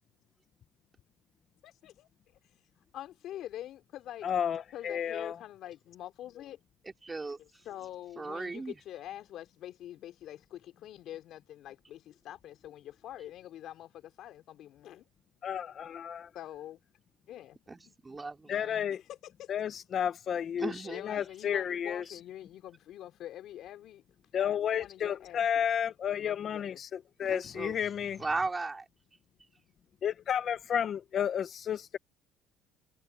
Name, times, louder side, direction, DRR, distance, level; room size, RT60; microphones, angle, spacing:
voice 1, 1.6-2.1 2.9-4.3 4.7-6.6 7.6-15.0 16.3-16.8 17.3-17.6 17.9-18.0 19.1-19.5 20.9-24.0 24.3-25.6 26.2-26.8, left 12 dB, 65° left, 3.2 m, -45 dB
voice 2, 4.2-5.3 15.4-16.3 18.5-19.0 19.5-22.2 24.3-28.2 30.0-32.0, left 8 dB, 45° left, 0.9 m, -32 dB
voice 3, 6.8-7.6 8.2-8.8 17.7-18.9 20.6-21.0 27.2-27.8 28.2-28.8, right 3 dB, 20° right, 4.6 m, -37 dB
cardioid pair, 100°, 0 cm